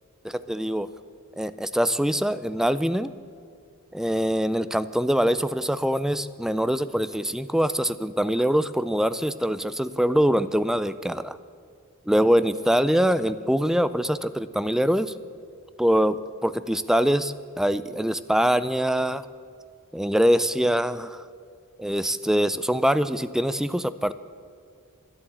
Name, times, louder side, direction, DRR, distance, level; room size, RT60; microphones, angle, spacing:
voice 1, 0.2-0.9 1.4-3.1 3.9-11.4 12.1-15.1 15.8-19.3 19.9-21.2 21.8-24.1, equal, ahead, 14 dB, 0.3 m, -23 dB
11.0 x 10.5 x 8.4 m, 2.2 s
head